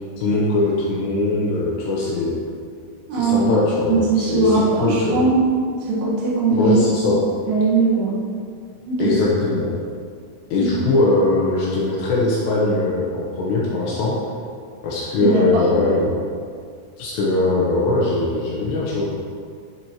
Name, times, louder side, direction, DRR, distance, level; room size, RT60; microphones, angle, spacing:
voice 1, 0.2-2.4 3.1-5.2 6.5-7.2 9.0-9.7 10.5-14.2 14.8-16.1 17.0-19.0, left 2 dB, 75° left, -4 dB, 2.8 m, -21 dB
voice 2, 3.1-3.5 3.9-5.4 5.8-6.7 7.1-7.2 7.5-8.1 8.9-9.1 10.6-10.7 15.2-15.6, right 3 dB, 65° right, -6 dB, 3.4 m, -19 dB
12.5 x 8.0 x 3.0 m, 2.2 s
omnidirectional pair, 5.7 m